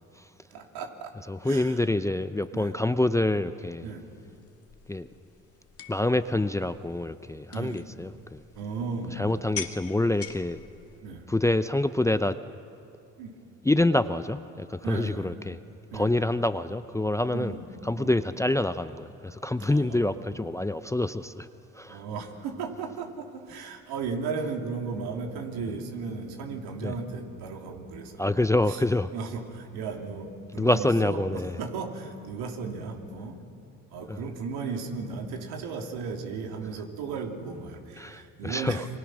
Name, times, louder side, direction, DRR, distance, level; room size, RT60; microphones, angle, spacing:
voice 1, 0.5-1.1 1.4-1.8 2.5-2.7 3.8-4.0 7.5-7.8 8.5-9.2 11.0-11.2 13.2-13.3 14.8-15.3 15.9-16.1 17.3-18.2 19.6-20.2 21.9-28.3 28.7-28.8 29.1-33.4 33.9-38.9, right 4 dB, 75° right, 2 dB, 3.1 m, -35 dB
voice 2, 1.3-3.9 4.9-5.1 5.9-8.4 9.2-10.6 11.3-12.4 13.6-15.6 15.9-17.5 17.8-21.5 21.7-22.0 26.8-26.9 28.2-29.1 30.5-31.6 34.1-34.2 38.0-38.9, left 2 dB, 10° left, 12 dB, 0.6 m, -26 dB
sound 1, 4.0-11.0, left 7 dB, 40° left, 1.8 m, -44 dB
28.5 x 24.0 x 6.2 m, 2.7 s
supercardioid pair, 75°, 38 cm